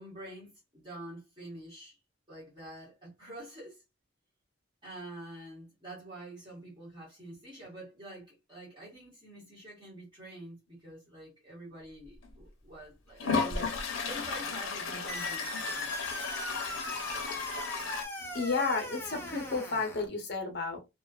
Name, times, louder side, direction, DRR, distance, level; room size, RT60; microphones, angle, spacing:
voice 1, 0.0-2.0 2.3-3.8 4.8-15.9, right 1 dB, 25° right, 1.2 m, -47 dB
Toilet flush, 12.2-12.3 13.2-18.0, left 4 dB, 85° left, 0.6 m, -34 dB
sound 1, 15.1-20.1, left 1 dB, 10° left, 0.5 m, -39 dB
voice 2, 16.4-17.6 18.2-20.8, left 4 dB, 55° left, 0.8 m, -34 dB
2.5 x 2.4 x 2.2 m
head